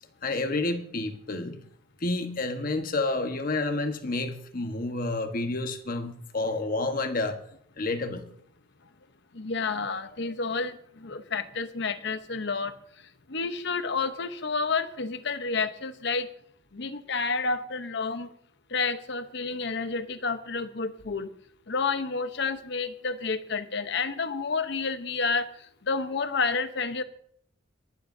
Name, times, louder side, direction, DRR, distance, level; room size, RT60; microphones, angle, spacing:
voice 1, 0.2-1.6 2.0-7.4 7.8-8.3, left 2 dB, 45° left, 6 dB, 1.4 m, -29 dB
voice 2, 9.3-12.7 13.3-16.3 16.7-18.3 18.7-21.3 21.7-25.5 25.8-27.0, left 4 dB, 65° left, 10 dB, 1.0 m, -30 dB
22.5 x 12.5 x 2.7 m, 0.65 s
head